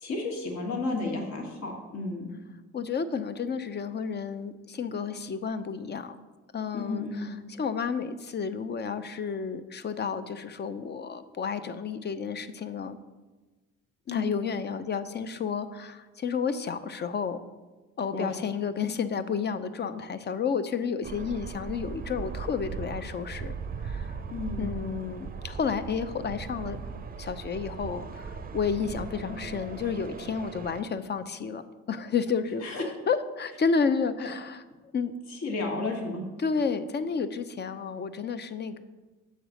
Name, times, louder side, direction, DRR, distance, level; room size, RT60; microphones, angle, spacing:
voice 1, 0.0-2.3 6.7-7.3 14.1-14.3 18.1-18.3 24.3-24.7 29.3-29.4 32.6-32.8 34.2-34.3 35.3-36.2, left 3 dB, 65° left, 1 dB, 1.4 m, -32 dB
voice 2, 2.7-6.2 6.5-13.0 14.1-17.4 18.0-23.6 23.8-24.2 24.6-26.8 27.2-31.6 31.9-32.7 33.1-34.6 34.9-35.1 36.4-38.8, left 6 dB, 35° left, 11 dB, 0.5 m, -31 dB
sound 1, 21.0-30.8, right 5 dB, 30° right, 0.5 m, -38 dB
6.6 x 4.0 x 6.3 m, 1.2 s
cardioid pair, 90°, 30 cm